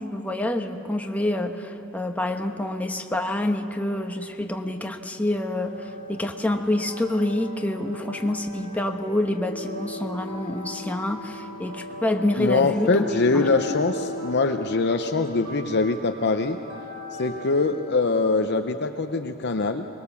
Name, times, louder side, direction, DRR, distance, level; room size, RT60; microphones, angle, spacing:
voice 1, 0.0-13.0 13.3-13.4, left 1 dB, 5° left, 4 dB, 1.1 m, -27 dB
sound 1, 5.4-17.7, left 1 dB, 80° right, 5.8 m, -37 dB
voice 2, 12.4-16.6 17.1-19.9, left 3 dB, 50° left, 6 dB, 0.7 m, -23 dB
24.5 x 21.0 x 7.1 m, 2.9 s
head